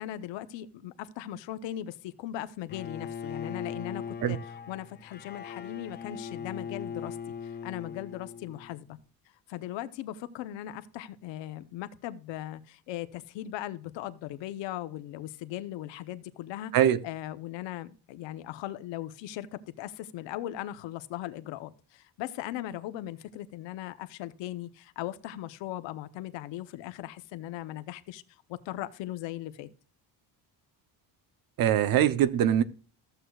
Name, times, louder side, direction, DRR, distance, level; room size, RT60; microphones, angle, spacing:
voice 1, 0.0-4.4 4.7-7.2 7.4-9.0 9.5-16.7 17.0-28.2 28.5-29.7, left 13 dB, 80° left, 0.9 m, -38 dB
Bowed string instrument, 2.7-8.8, left 7 dB, 25° left, 0.5 m, -39 dB
voice 2, 31.6-32.6, right 10 dB, 50° right, 0.7 m, -22 dB
14.0 x 8.0 x 2.3 m
cardioid pair, 160°, 43 cm